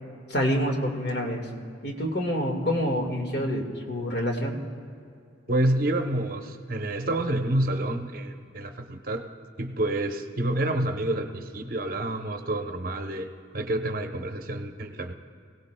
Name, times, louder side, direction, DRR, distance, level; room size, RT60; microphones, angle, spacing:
voice 1, 0.3-1.5 1.8-4.6, equal, 55° left, 1 dB, 1.7 m, -27 dB
voice 2, 5.5-9.3 9.6-13.3 13.5-15.1, right 1 dB, 45° right, 5 dB, 0.7 m, -28 dB
25.5 x 17.0 x 2.2 m, 2.3 s
head